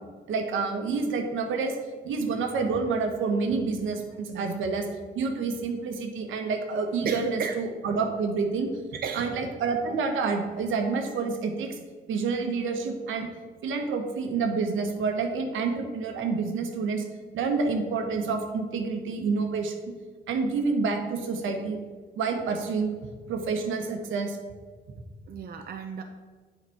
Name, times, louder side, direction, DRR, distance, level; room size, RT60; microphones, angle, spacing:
voice 1, 0.3-1.7 2.0-4.9 5.1-8.7 9.1-11.8 12.1-13.3 13.6-17.0 17.3-19.8 20.3-21.8 22.2-22.9 23.3-24.4, right 4 dB, 80° right, 4 dB, 1.2 m, -28 dB
voice 2, 7.0-7.5 8.9-9.4 9.9-10.0 25.3-26.0, right 6 dB, 50° right, 4 dB, 0.6 m, -34 dB
7.8 x 5.1 x 4.6 m, 1.5 s
cardioid pair, 90°, 20 cm